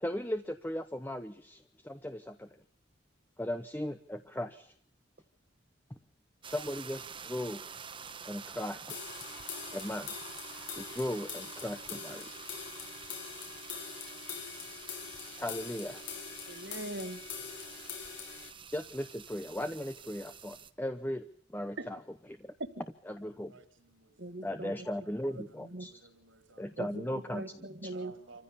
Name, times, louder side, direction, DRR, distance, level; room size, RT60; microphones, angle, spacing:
voice 1, 0.0-2.5 3.4-4.7 6.5-7.6 8.2-9.0 9.7-10.1 10.8-12.4 15.4-16.0 18.7-21.2 21.5-22.0 22.4-22.5 23.1-23.5 24.4-25.9 26.6-27.4, left 1 dB, 10° left, 0.8 m, -37 dB
sound 1, 6.4-20.7, right 6 dB, 25° right, 1.1 m, -48 dB
sound 2, 8.9-18.5, left 6 dB, 75° left, 5.6 m, -44 dB
voice 2, 16.5-17.2 21.8-21.9 22.8-22.9 24.2-24.7 25.3-25.9 26.8-28.1, right 1 dB, 60° right, 1.9 m, -41 dB
voice 3, 17.4-17.7 23.3-24.6 25.0-27.5 27.9-28.4, right 3 dB, 80° right, 3.5 m, -58 dB
26.5 x 15.5 x 7.1 m
head